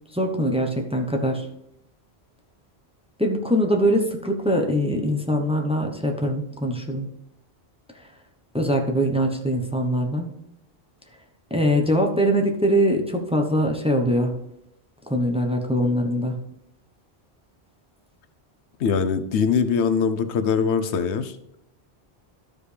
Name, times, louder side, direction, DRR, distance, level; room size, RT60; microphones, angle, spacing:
voice 1, 0.1-1.5 3.2-7.1 7.9-8.0 8.5-10.3 11.5-14.4 15.1-16.4, equal, 5° right, 3 dB, 0.8 m, -22 dB
voice 2, 18.8-21.4, left 6 dB, 90° left, 11 dB, 1.0 m, -22 dB
12.5 x 5.1 x 3.3 m, 0.78 s
omnidirectional pair, 1.1 m